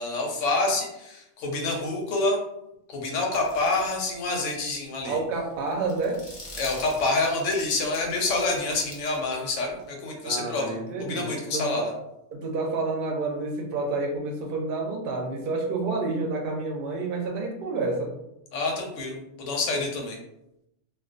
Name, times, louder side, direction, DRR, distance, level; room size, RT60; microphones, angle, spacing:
voice 1, 0.0-2.4 2.9-5.2 6.6-11.9 18.5-20.2, left 2 dB, 85° left, 1 dB, 1.0 m, -27 dB
sound 1, 3.3-4.2 4.5-4.6 5.0-9.8, left 1 dB, 35° left, 0.4 m, -45 dB
voice 2, 5.1-6.2 10.2-11.9 12.3-18.1, right 3 dB, 60° right, 2 dB, 0.6 m, -29 dB
2.3 x 2.2 x 2.4 m, 0.85 s
omnidirectional pair, 1.3 m